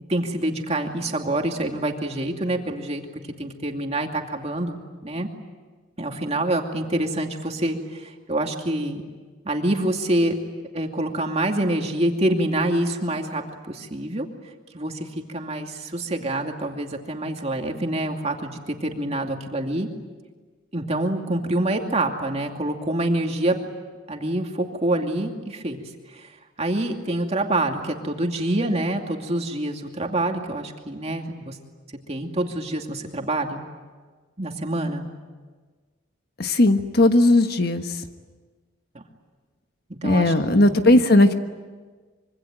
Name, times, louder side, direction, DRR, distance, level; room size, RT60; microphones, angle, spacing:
voice 1, 0.1-3.0 3.4-5.3 6.0-9.0 9.4-10.4 10.7-14.3 14.7-19.9 20.7-23.6 24.1-26.3 26.6-31.6 32.1-33.6 34.4-35.1 38.9-39.0 40.0-41.0, right 1 dB, 30° right, 3 dB, 2.5 m, -26 dB
voice 2, 36.4-37.9 40.0-41.3, left 1 dB, 50° left, 7 dB, 1.4 m, -17 dB
25.5 x 24.5 x 9.2 m, 1.4 s
head